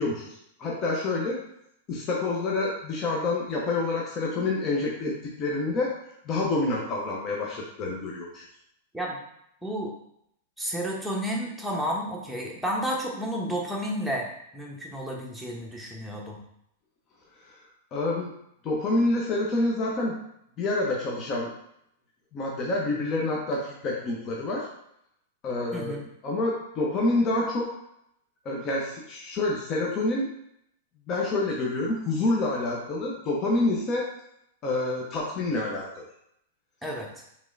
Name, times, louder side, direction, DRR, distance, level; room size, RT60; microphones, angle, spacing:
voice 1, 0.0-1.4 1.9-6.0 6.2-8.4 17.5-17.6 17.9-18.3 18.6-20.1 20.6-21.5 22.3-24.7 25.4-26.0 26.2-27.7 28.4-30.3 31.1-34.1 34.6-36.0, left 2 dB, 35° left, -2 dB, 0.9 m, -27 dB
voice 2, 9.6-9.9 10.6-14.3 14.5-16.4 25.7-26.1 36.8-37.2, equal, ahead, -3 dB, 1.0 m, -31 dB
4.6 x 3.5 x 2.7 m, 0.75 s
hypercardioid pair, 110°, 0 cm